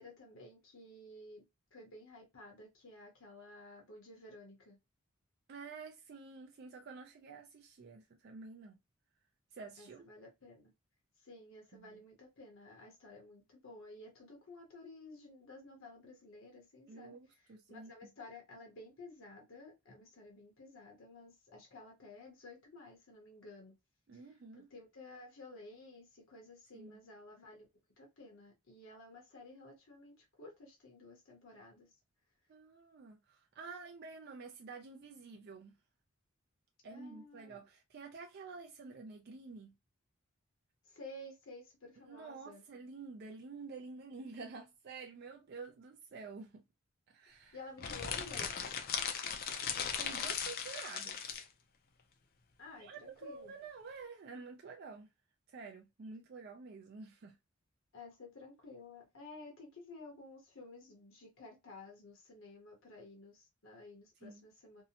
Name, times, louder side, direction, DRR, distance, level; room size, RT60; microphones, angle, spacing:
voice 1, 0.0-1.4 1.7-4.8 9.8-10.7 11.2-17.1 17.4-23.8 24.5-27.7 28.0-31.9 36.9-37.6 40.9-42.6 47.5-48.5 52.6-53.6 57.9-64.8, left 2 dB, 65° left, 0.8 m, -53 dB
voice 2, 5.5-8.7 9.5-10.0 11.7-12.0 16.9-17.9 24.1-24.7 26.7-27.0 32.5-35.7 36.8-39.7 42.0-46.6 47.1-47.6 50.0-51.2 52.8-55.1 55.5-57.3 64.2-64.4, right 4 dB, 50° right, 0.4 m, -49 dB
sound 1, 47.8-51.5, left 7 dB, 45° left, 0.4 m, -38 dB
2.7 x 2.0 x 2.7 m
head